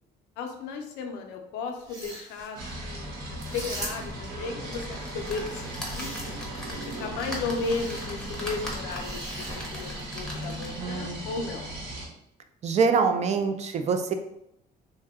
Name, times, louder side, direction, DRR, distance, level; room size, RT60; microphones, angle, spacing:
voice 1, 0.4-3.0 3.3-6.1 6.7-11.6, left 4 dB, 85° left, 4 dB, 0.5 m, -35 dB
sound 1, 1.8-2.5 3.4-4.3 5.4-6.6 7.5-8.1 9.0-10.1, right 1 dB, 25° right, 0.9 m, -40 dB
sound 2, 2.5-12.1, right 1 dB, 65° right, 0.9 m, -37 dB
sound 3, 4.7-10.9 11.5-11.6 11.8-11.9, left 1 dB, 5° left, 0.7 m, -40 dB
voice 2, 10.8-11.2 12.6-14.1, right 5 dB, 40° right, 7 dB, 0.4 m, -25 dB
2.7 x 2.1 x 3.4 m, 0.79 s
cardioid pair, 110°, 17 cm